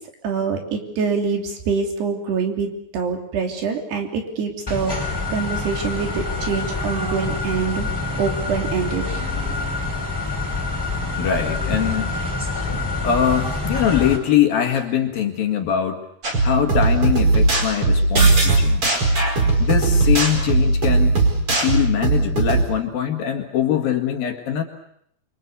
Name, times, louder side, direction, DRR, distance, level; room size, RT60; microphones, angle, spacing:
voice 1, 0.2-7.9 8.2-9.0, right 5 dB, 65° right, 3 dB, 5.1 m, -25 dB
sound 1, 4.7-14.2, left 3 dB, 5° left, 5.0 m, -26 dB
voice 2, 11.2-12.1 13.0-16.0 16.4-19.0 19.6-21.1 21.6-24.6, left 9 dB, 60° left, 4 dB, 3.4 m, -22 dB
sound 2, 16.2-22.6, right 2 dB, 30° right, 5.3 m, -18 dB
28.5 x 24.5 x 7.0 m, 0.71 s
omnidirectional pair, 5.2 m